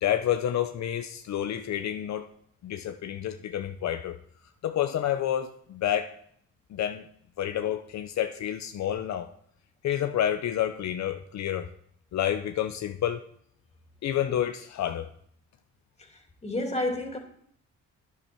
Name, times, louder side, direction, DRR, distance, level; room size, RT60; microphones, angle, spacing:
voice 1, 0.0-2.3 2.6-4.2 4.6-6.1 6.7-7.0 7.4-9.3 9.8-11.7 12.1-13.2 14.0-15.1, left 10 dB, 65° left, 0.8 m, -29 dB
voice 2, 16.0-17.2, left 1 dB, 20° left, 2.8 m, -31 dB
11.0 x 10.0 x 4.5 m
cardioid pair, 90°, 30 cm